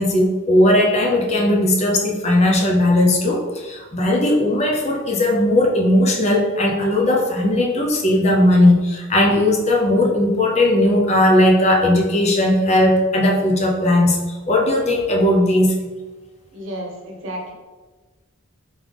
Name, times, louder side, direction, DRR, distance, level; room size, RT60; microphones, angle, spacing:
voice 1, 0.0-14.2 14.5-15.7, left 1 dB, 30° left, -1 dB, 0.5 m, -17 dB
voice 2, 16.5-17.5, right 1 dB, 70° right, 0 dB, 0.8 m, -31 dB
3.7 x 3.6 x 3.3 m, 1.3 s
head